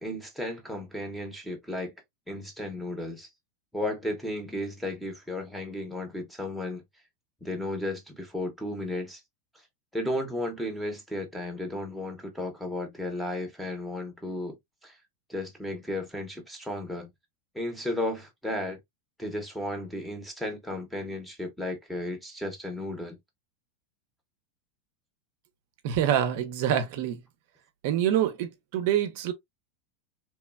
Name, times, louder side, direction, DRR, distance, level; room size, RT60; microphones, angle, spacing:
voice 1, 0.0-1.9 2.3-3.3 3.7-6.8 7.4-9.2 9.9-14.6 14.8-15.0 15.3-17.1 17.5-18.8 19.2-23.2, left 1 dB, ahead, 0.6 m, -34 dB
voice 2, 25.8-27.2 27.8-29.3, right 10 dB, 60° right, 0.5 m, -26 dB
3.0 x 2.2 x 2.2 m
supercardioid pair, 155°, 0 cm